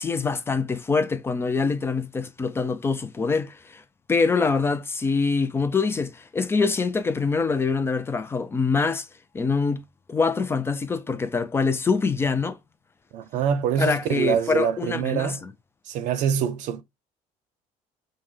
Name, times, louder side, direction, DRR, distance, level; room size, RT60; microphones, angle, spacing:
voice 1, 0.0-3.8 4.1-9.1 9.3-9.8 10.1-12.6 13.8-15.5, left 4 dB, 20° left, 0.4 m, -24 dB
voice 2, 13.1-15.4 15.9-16.8, right 8 dB, 70° right, 0.6 m, -25 dB
5.4 x 2.1 x 3.3 m
cardioid pair, 145°, 13 cm